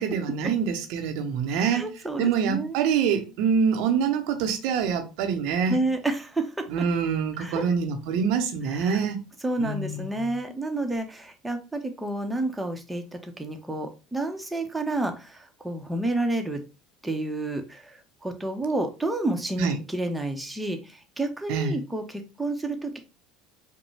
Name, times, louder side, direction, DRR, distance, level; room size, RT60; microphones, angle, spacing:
voice 1, 0.0-1.9 2.2-5.8 6.7-9.2 9.6-9.9 19.6-19.8 21.5-21.8, right 6 dB, 65° right, 0.8 m, -25 dB
voice 2, 1.5-2.8 5.7-6.7 7.4-7.7 8.7-9.0 9.4-16.6 17.0-23.0, right 2 dB, 10° right, 0.9 m, -30 dB
5.1 x 2.2 x 3.3 m
hypercardioid pair, 70°, 0 cm